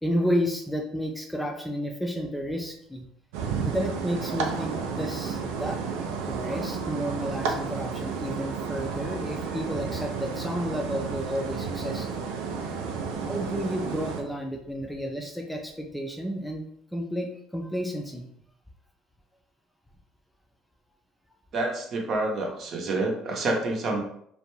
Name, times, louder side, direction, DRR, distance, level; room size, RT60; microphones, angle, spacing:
voice 1, 0.0-3.0 3.7-12.1 13.2-18.2, equal, 5° left, 2 dB, 0.4 m, -31 dB
sound 1, 3.3-14.2, right 5 dB, 80° right, 0.4 m, -32 dB
voice 2, 21.5-24.0, right 2 dB, 50° right, 0 dB, 0.7 m, -28 dB
2.5 x 2.2 x 3.0 m, 0.69 s
hypercardioid pair, 70°, 0 cm